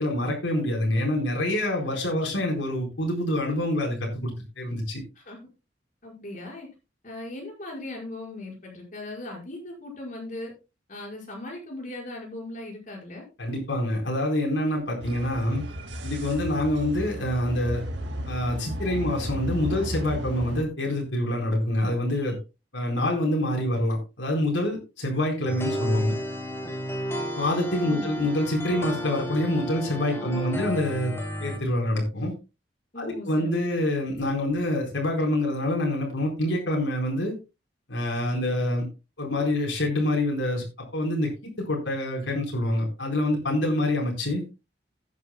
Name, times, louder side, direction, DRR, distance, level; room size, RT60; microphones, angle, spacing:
voice 1, 0.0-5.0 13.4-15.6 16.0-17.8 18.3-22.4 22.7-26.2 27.3-31.1 31.4-32.3 33.0-37.3 37.9-38.9 39.2-40.6 40.9-41.3 41.6-44.4, left 1 dB, 85° left, 0 dB, 4.2 m, -26 dB
voice 2, 6.0-6.7 7.0-10.5 10.9-13.2 27.8-28.1 30.1-30.7 32.9-33.5, left 2 dB, 45° left, -1 dB, 5.2 m, -38 dB
sound 1, 15.0-20.6, equal, 85° right, 2.0 m, -34 dB
sound 2, 25.5-31.6, left 1 dB, 15° left, 3.0 m, -32 dB
16.5 x 9.5 x 2.2 m, 0.29 s
head